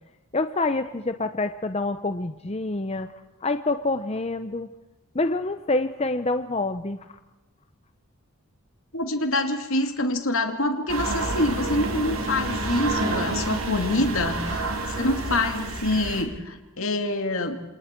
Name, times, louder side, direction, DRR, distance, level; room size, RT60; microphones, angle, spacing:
voice 1, 0.3-3.1 3.4-4.7 5.1-7.0, left 2 dB, 30° left, 9 dB, 0.7 m, -26 dB
voice 2, 8.9-14.6 14.9-17.6, left 2 dB, 70° left, 6 dB, 2.4 m, -26 dB
sound 1, 10.9-16.2, right 2 dB, 80° right, 3.6 m, -29 dB
29.0 x 27.5 x 4.5 m, 1.0 s
head